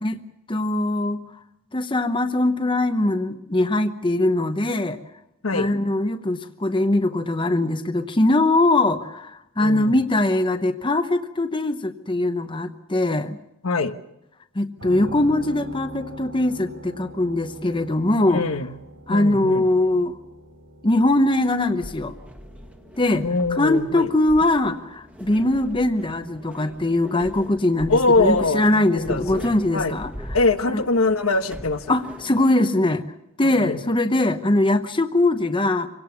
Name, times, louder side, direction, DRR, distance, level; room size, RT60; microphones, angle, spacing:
voice 1, 0.5-1.2 1.7-5.0 5.5-13.4 14.5-18.4 19.1-20.2 20.8-22.1 23.0-30.4 30.7-30.8 31.9-33.0 33.4-35.9, left 2 dB, 25° left, 8 dB, 0.9 m, -21 dB
voice 2, 9.6-10.0 13.6-13.9 18.3-18.7 19.1-19.7 23.2-24.1 27.9-29.4 29.7-29.9 30.3-31.8 33.5-33.9, left 3 dB, 85° left, 8 dB, 1.2 m, -22 dB
sound 1, 14.8-28.5, equal, 60° right, 4.8 m, -44 dB
sound 2, 21.6-32.5, equal, 5° right, 1.5 m, -41 dB
25.5 x 17.5 x 7.1 m, 0.88 s
head